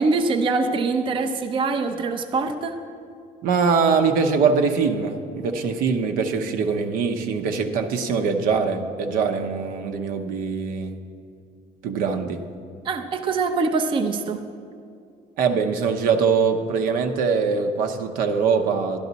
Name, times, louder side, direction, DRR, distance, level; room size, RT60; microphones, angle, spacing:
voice 1, 0.0-2.8 12.8-14.4, right 3 dB, 35° right, 6 dB, 0.6 m, -23 dB
voice 2, 3.4-10.9 11.8-12.4 15.4-19.0, right 5 dB, 85° right, 6 dB, 0.9 m, -22 dB
12.0 x 11.5 x 4.0 m, 2.4 s
cardioid pair, 150°, 14 cm